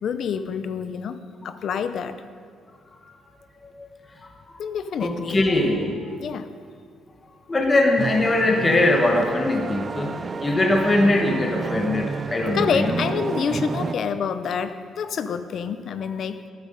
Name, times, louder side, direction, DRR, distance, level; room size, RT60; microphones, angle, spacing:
voice 1, 0.0-2.2 4.6-5.5 6.2-6.5 12.5-16.4, left 6 dB, 45° left, 11 dB, 0.6 m, -27 dB
voice 2, 5.0-6.1 7.5-10.2 10.4-12.9, left 2 dB, 20° left, 2 dB, 1.1 m, -21 dB
sound 1, 8.0-14.0, right 4 dB, 25° right, 0.4 m, -31 dB
14.5 x 12.5 x 5.3 m, 2.1 s
cardioid pair, 170°, 0 cm